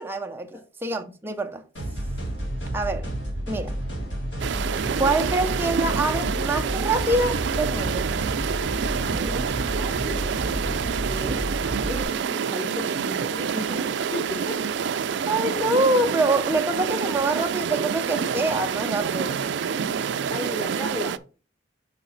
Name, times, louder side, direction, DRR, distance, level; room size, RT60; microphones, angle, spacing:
voice 1, 0.0-1.6 2.7-3.1 3.5-3.7 5.0-8.1 10.9-11.4 15.3-19.4, right 2 dB, 10° right, 0.6 m, -25 dB
sound 1, 1.7-12.0, right 1 dB, 75° left, 3.0 m, -30 dB
sound 2, 4.4-21.2, right 7 dB, 75° right, 0.4 m, -27 dB
voice 2, 9.0-11.1 11.9-14.6 20.3-21.2, left 1 dB, 15° left, 1.1 m, -36 dB
5.6 x 5.1 x 3.9 m
head